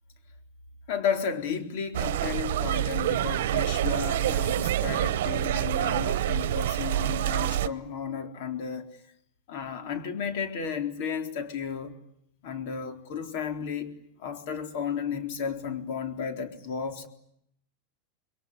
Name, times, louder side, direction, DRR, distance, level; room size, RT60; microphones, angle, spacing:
voice 1, 0.9-8.9 9.5-12.0 12.4-13.9 14.2-17.1, left 7 dB, 55° left, 4.0 m, -33 dB
sound 1, 1.9-7.7, right 12 dB, 75° right, 1.0 m, -27 dB
27.5 x 22.0 x 9.7 m
supercardioid pair, 165°, 0 cm